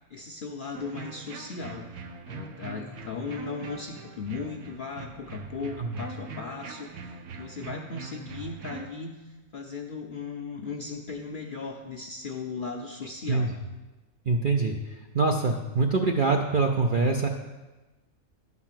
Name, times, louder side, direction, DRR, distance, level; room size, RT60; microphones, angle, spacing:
voice 1, 0.1-13.5, left 4 dB, 55° left, 1 dB, 0.6 m, -37 dB
sound 1, 0.7-8.9, right 4 dB, 75° right, 1.3 m, -42 dB
voice 2, 14.3-17.3, right 3 dB, 55° right, 2 dB, 0.6 m, -24 dB
11.0 x 4.1 x 7.4 m, 1.2 s
omnidirectional pair, 1.5 m